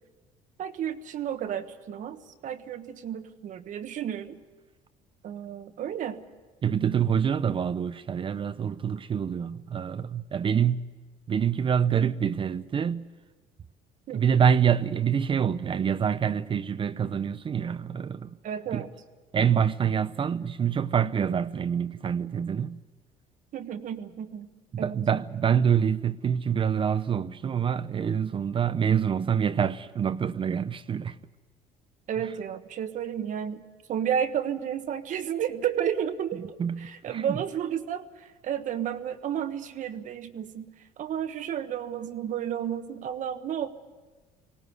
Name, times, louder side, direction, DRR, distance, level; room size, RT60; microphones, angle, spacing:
voice 1, 0.6-4.4 5.2-6.2 14.1-14.2 18.4-18.9 23.5-24.5 24.8-25.0 32.1-33.6 33.9-40.7 41.0-43.7, right 9 dB, 55° right, 1.4 m, -32 dB
voice 2, 6.6-10.9 11.3-13.1 14.1-18.3 18.7-18.8 19.3-22.8 24.7-31.2 36.6-37.4, right 8 dB, 35° right, 0.6 m, -26 dB
19.5 x 18.0 x 9.5 m
cardioid pair, 105°, 16 cm